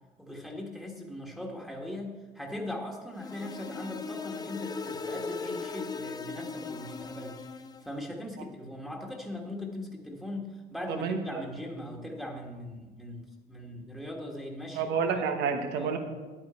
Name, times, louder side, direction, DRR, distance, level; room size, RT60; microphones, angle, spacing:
voice 1, 0.2-7.4 7.8-15.0 15.8-16.0, left 1 dB, ahead, 0 dB, 1.5 m, -40 dB
sound 1, 3.1-7.9, left 4 dB, 25° left, 0.7 m, -38 dB
voice 2, 11.0-11.4 14.7-16.0, right 6 dB, 85° right, 6 dB, 1.1 m, -29 dB
10.0 x 8.8 x 4.4 m, 1.3 s
cardioid pair, 110°, 17 cm